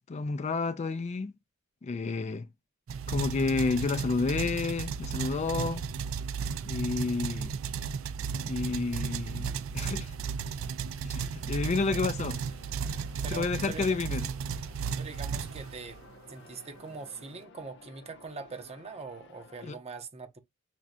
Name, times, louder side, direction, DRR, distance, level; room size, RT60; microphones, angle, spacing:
voice 1, 0.0-1.3 1.8-2.5 3.1-5.8 6.6-7.5 8.4-9.5 9.7-10.2 11.0-12.4 13.3-14.3 19.6-19.8, left 4 dB, 35° left, 0.4 m, -30 dB
sound 1, 2.9-16.1, right 6 dB, 75° right, 0.4 m, -34 dB
sound 2, 11.4-19.7, left 4 dB, 60° left, 0.8 m, -55 dB
voice 2, 13.2-14.0 15.0-16.0 16.3-20.4, right 4 dB, 30° right, 0.8 m, -42 dB
5.9 x 2.3 x 2.5 m
head